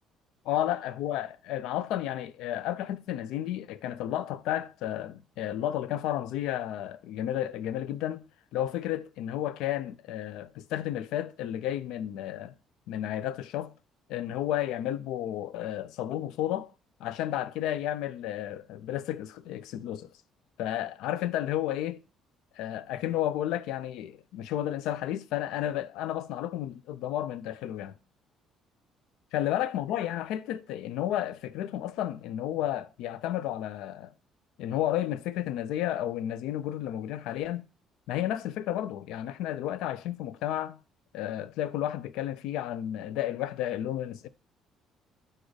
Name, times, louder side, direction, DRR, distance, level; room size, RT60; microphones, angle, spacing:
voice 1, 0.5-8.3 8.5-12.5 12.9-13.7 14.1-16.7 17.0-20.1 20.6-22.0 22.6-28.0 29.3-34.1 34.6-37.6 38.1-40.8 41.1-44.3, left 12 dB, 80° left, 0.3 m, -32 dB
6.2 x 2.5 x 3.2 m
cardioid pair, 175°, 0 cm